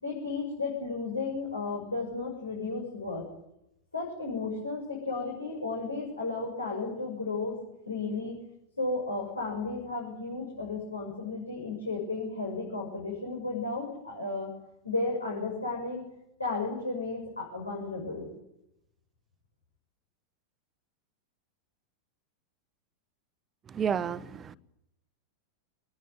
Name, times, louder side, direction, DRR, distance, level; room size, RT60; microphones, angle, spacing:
voice 1, 0.0-3.2 3.9-7.6 7.9-8.4 8.8-14.5 14.8-16.0 16.4-18.3, left 3 dB, 80° left, 7.2 m, -33 dB
voice 2, 23.7-24.6, right 7 dB, 25° right, 1.3 m, -31 dB
27.0 x 20.5 x 9.5 m
figure-of-eight pair, 90°, 0 cm